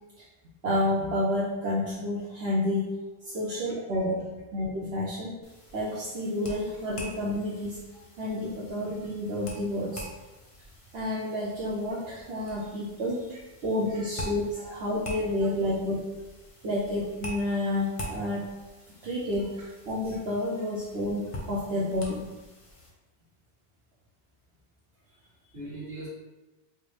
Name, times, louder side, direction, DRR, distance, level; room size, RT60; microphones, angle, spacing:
voice 1, 0.6-5.4 5.7-7.8 8.2-10.0 10.9-13.3 13.6-16.1 16.6-18.4 19.0-22.3, left 1 dB, 75° right, -7 dB, 0.9 m, -30 dB
sound 1, 5.4-22.9, equal, 35° left, 0.6 m, -45 dB
voice 2, 25.1-26.1, right 2 dB, 50° right, -7 dB, 1.4 m, -43 dB
4.5 x 2.0 x 3.1 m, 1.1 s
omnidirectional pair, 1.1 m